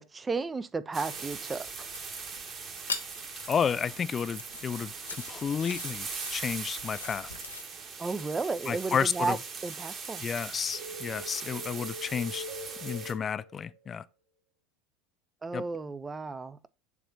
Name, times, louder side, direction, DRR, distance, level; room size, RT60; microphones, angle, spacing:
voice 1, 0.0-1.9 8.0-9.4 9.6-10.3 15.4-16.7, right 4 dB, 20° right, 0.5 m, -33 dB
sound 1, 0.9-13.1, right 5 dB, 35° right, 1.6 m, -40 dB
sound 2, 1.7-7.6, left 4 dB, 90° left, 0.8 m, -43 dB
voice 2, 3.5-4.9 5.3-7.3 8.7-9.4 10.2-12.4 12.8-14.1 15.5-15.6, left 7 dB, 30° left, 0.3 m, -31 dB
sound 3, 10.7-13.9, equal, 55° right, 1.7 m, -43 dB
7.2 x 3.2 x 5.6 m
hypercardioid pair, 75°, 0 cm